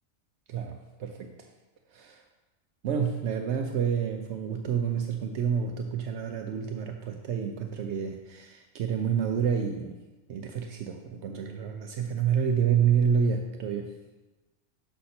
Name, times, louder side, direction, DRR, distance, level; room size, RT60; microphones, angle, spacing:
voice 1, 0.5-1.5 1.9-2.2 2.8-10.0 10.3-13.9, right 7 dB, 70° right, 4 dB, 0.8 m, -29 dB
6.5 x 5.6 x 4.3 m, 1.1 s
omnidirectional pair, 1.2 m